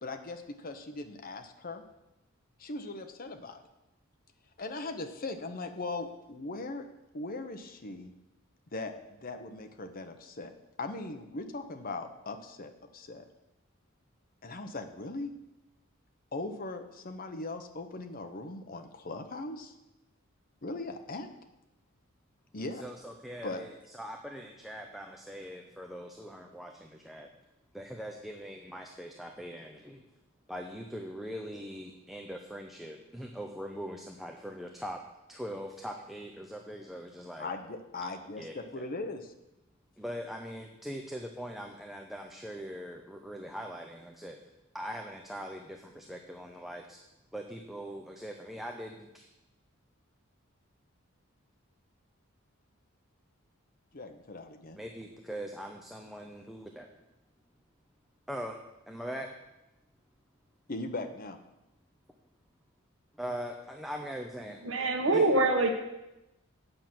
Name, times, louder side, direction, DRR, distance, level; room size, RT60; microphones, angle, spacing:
voice 1, 0.0-1.8 2.6-3.6 4.6-6.9 7.1-8.1 8.7-10.5 10.8-13.3 14.4-15.3 16.3-19.7 20.6-21.3 22.5-22.9 23.4-23.6 37.4-39.3 53.9-54.8 60.7-61.4, left 2 dB, 45° left, 7 dB, 0.9 m, -39 dB
voice 2, 22.8-27.3 27.7-30.0 30.5-35.0 35.3-37.5 38.0-38.1 38.4-38.8 40.0-44.4 44.7-47.0 47.3-49.3 54.8-56.9 58.3-58.6 58.9-59.3 63.2-64.6 65.1-65.2, equal, ahead, 2 dB, 0.6 m, -41 dB
voice 3, 64.6-65.7, right 2 dB, 70° right, 4 dB, 1.3 m, -24 dB
9.0 x 5.9 x 7.6 m, 0.95 s
head